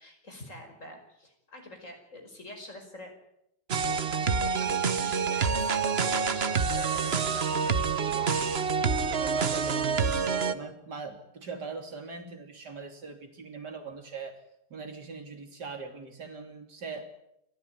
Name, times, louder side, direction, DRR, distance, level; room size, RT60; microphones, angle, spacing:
voice 1, 0.0-3.1 4.1-8.8, left 1 dB, 45° left, 4 dB, 5.7 m, -46 dB
sound 1, 3.7-10.5, right 5 dB, 40° right, 1.2 m, -27 dB
voice 2, 9.1-14.4 14.7-17.1, right 4 dB, 80° right, 5 dB, 3.7 m, -41 dB
28.5 x 14.0 x 9.5 m, 0.80 s
omnidirectional pair, 1.8 m